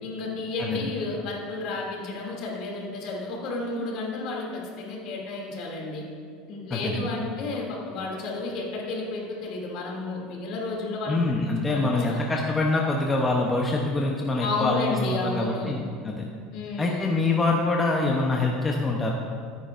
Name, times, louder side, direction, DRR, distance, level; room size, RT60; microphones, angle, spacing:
voice 1, 0.0-6.0 6.5-11.2 11.7-12.2 14.4-15.7 16.5-17.0, left 3 dB, 55° left, -2 dB, 2.5 m, -32 dB
voice 2, 6.7-7.1 11.1-15.8 16.0-16.3 16.8-19.1, left 2 dB, 15° left, -1 dB, 0.7 m, -25 dB
14.5 x 9.3 x 2.5 m, 2.2 s
supercardioid pair, 145°, 0 cm